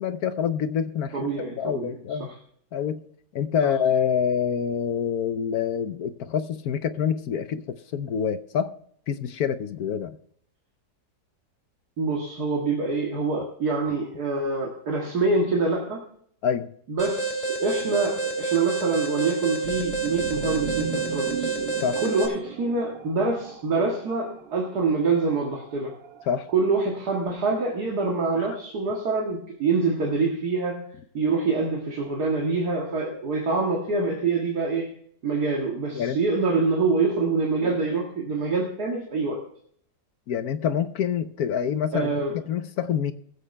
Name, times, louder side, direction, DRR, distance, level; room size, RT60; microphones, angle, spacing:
voice 1, 0.0-1.2 1.6-2.3 2.7-3.0 3.3-8.7 9.1-10.2 16.4-16.7 21.8-22.0 26.3-26.5 28.4-28.5 35.9-36.2 40.3-42.2 42.5-43.1, left 8 dB, 65° left, 10 dB, 1.2 m, -26 dB
voice 2, 1.1-1.9 2.2-2.3 3.6-3.7 12.0-16.0 16.9-21.6 22.0-25.9 26.5-30.9 31.1-34.9 35.2-39.4 41.9-42.3, right 4 dB, 60° right, -1 dB, 2.3 m, -25 dB
Alarm, 17.0-22.3, right 3 dB, 20° right, 2.6 m, -29 dB
sound 1, 19.6-26.6, right 9 dB, 90° right, 1.5 m, -37 dB
21.0 x 8.1 x 3.3 m, 0.64 s
omnidirectional pair, 1.9 m